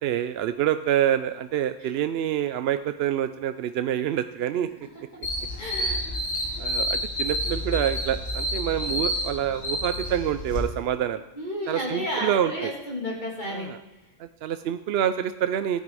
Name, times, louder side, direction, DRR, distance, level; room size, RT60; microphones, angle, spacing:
voice 1, 0.0-4.7 5.8-6.0 6.6-11.2 11.7-12.7 13.5-13.8 14.2-15.8, right 10 dB, 65° right, 10 dB, 0.7 m, -27 dB
sound 1, 5.2-10.6, equal, 75° left, 3.0 m, -29 dB
voice 2, 5.6-6.0 11.4-13.7, equal, 35° left, -3 dB, 2.8 m, -32 dB
14.5 x 9.2 x 4.8 m, 0.94 s
omnidirectional pair, 1.4 m